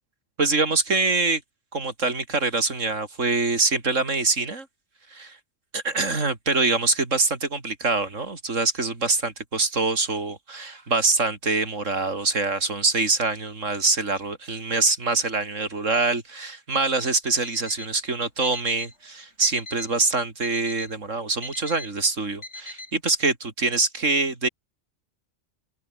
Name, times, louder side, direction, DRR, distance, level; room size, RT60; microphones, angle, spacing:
voice 1, 0.4-1.4 1.7-4.7 5.1-5.4 5.7-24.5, right 3 dB, 85° right, 3.8 m, -24 dB
Alarm, 17.2-17.9 18.4-19.0 19.4-20.0 20.4-21.0 21.4-21.9 22.4-22.9, left 2 dB, 65° left, 5.3 m, -40 dB
omnidirectional pair, 1.3 m